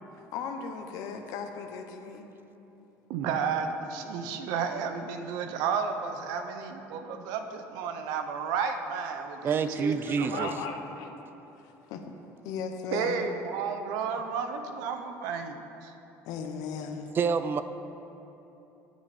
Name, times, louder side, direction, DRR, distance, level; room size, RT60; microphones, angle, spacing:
voice 1, 0.3-2.2 10.1-11.1 11.6-12.2 12.4-13.2 16.3-17.1, left 6 dB, 70° left, 5 dB, 0.9 m, -37 dB
voice 2, 3.1-10.5 12.9-15.9, right 6 dB, 80° right, 7 dB, 0.7 m, -32 dB
voice 3, 9.4-10.5 17.1-17.6, right 5 dB, 35° right, 11 dB, 0.4 m, -27 dB
9.5 x 8.7 x 4.2 m, 3.0 s
cardioid pair, 120°, 6 cm